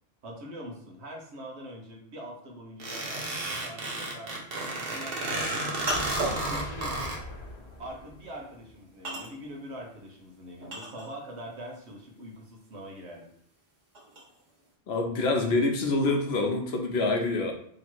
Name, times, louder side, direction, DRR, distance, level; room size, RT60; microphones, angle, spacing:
voice 1, 0.2-4.5 4.9-6.0 6.5-7.1 7.8-13.3, equal, 90° right, 0 dB, 1.3 m, -43 dB
sound 1, 2.8-7.2, right 2 dB, 60° right, 1.0 m, -32 dB
sound 2, 4.2-11.5 11.8-14.7, right 1 dB, 45° right, 1.2 m, -38 dB
sound 3, 5.9-9.0 9.4-9.5, left 2 dB, 45° left, 1.0 m, -41 dB
voice 2, 14.9-17.5, left 2 dB, 75° left, 3 dB, 1.0 m, -26 dB
3.2 x 2.9 x 4.4 m, 0.64 s
omnidirectional pair, 1.1 m